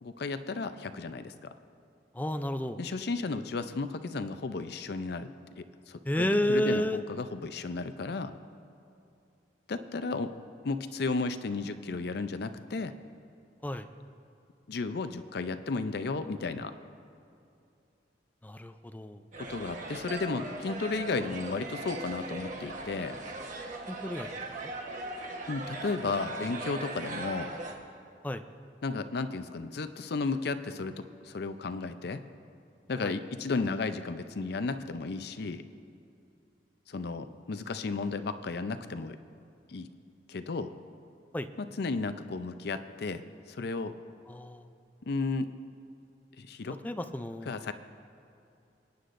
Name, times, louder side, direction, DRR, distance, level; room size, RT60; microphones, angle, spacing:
voice 1, 0.0-1.5 2.8-5.3 5.6-8.3 9.7-10.3 10.6-12.9 14.7-16.7 19.4-23.2 25.5-27.5 28.8-32.2 32.9-35.6 36.9-39.2 39.7-39.9 40.3-40.7 41.8-43.2 43.5-43.9 45.1-45.5 46.4-46.8 47.5-47.7, left 3 dB, 60° left, 10 dB, 0.5 m, -34 dB
voice 2, 2.1-2.8 6.1-7.0 13.6-13.9 18.4-19.2 23.9-24.3 24.6-24.7 28.2-28.4 33.0-33.1 41.3-41.5 44.3-44.7 46.8-47.5, left 1 dB, 10° left, 9 dB, 0.4 m, -31 dB
sound 1, 19.3-27.7, right 2 dB, 45° right, 1.2 m, -39 dB
28.0 x 9.5 x 2.6 m, 2.6 s
head